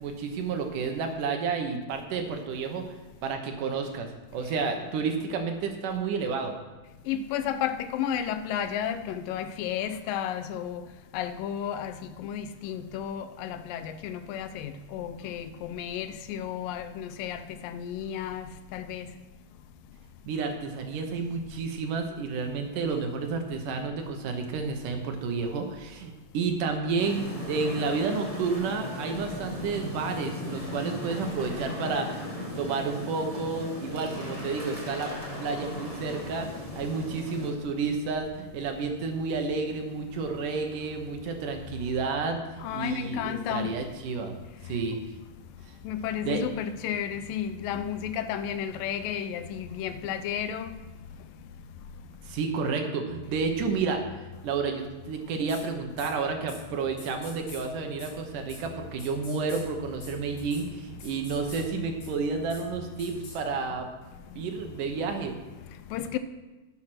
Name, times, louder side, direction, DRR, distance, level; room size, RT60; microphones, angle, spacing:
voice 1, 0.0-3.0 3.2-6.6 20.3-35.1 35.4-36.5 36.8-44.3 44.6-45.0 46.3-46.4 49.6-49.7 52.2-63.9 64.4-65.3, right 4 dB, 70° right, 2.4 m, -31 dB
voice 2, 7.1-10.8 11.1-11.9 12.2-18.5 18.7-19.1 42.6-43.8 45.9-50.8 65.9-66.2, left 9 dB, 80° left, 2.2 m, -32 dB
sound 1, 27.0-37.5, left 1 dB, 15° left, 1.2 m, -37 dB
sound 2, 55.5-55.6 56.0-56.1 56.5-56.6 57.0-57.6 58.0-58.1 58.5-58.6 59.0-59.6 60.0-60.1 60.4-60.6 61.0-61.6 62.0-62.1 62.5-62.6 63.0-63.4, left 3 dB, 55° left, 4.2 m, -45 dB
11.5 x 8.7 x 6.0 m
omnidirectional pair, 4.2 m